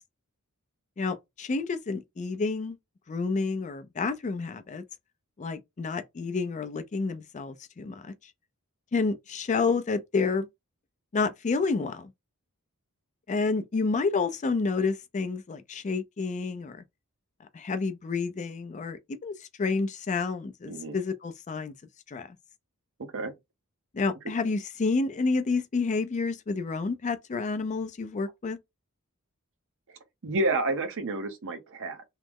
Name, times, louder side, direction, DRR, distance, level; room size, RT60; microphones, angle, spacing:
voice 1, 1.0-2.8 3.1-4.8 5.4-8.1 8.9-10.5 11.1-12.1 13.3-16.8 17.5-21.7 22.1-22.3 23.9-28.6, left 4 dB, 35° left, 0.4 m, -29 dB
voice 2, 20.6-21.0 23.1-23.3 29.9-32.0, right 2 dB, 60° right, 0.7 m, -30 dB
3.1 x 2.0 x 3.5 m
head